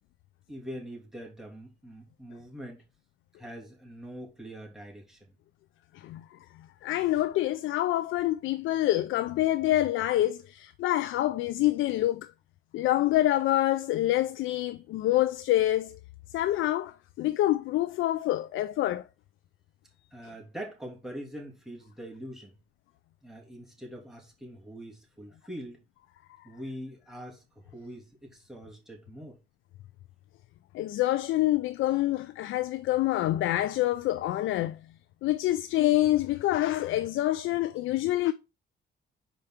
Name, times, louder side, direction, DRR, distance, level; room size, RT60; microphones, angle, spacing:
voice 1, 0.5-2.8 3.4-5.2 20.1-22.6 23.2-25.8 26.4-29.4, equal, ahead, 2.9 m, -43 dB
voice 2, 6.8-12.3 12.7-16.0 16.3-19.0 30.7-34.8 35.2-38.3, left 15 dB, 80° left, 0.5 m, -26 dB
5.1 x 4.4 x 5.9 m
cardioid pair, 90°, 20 cm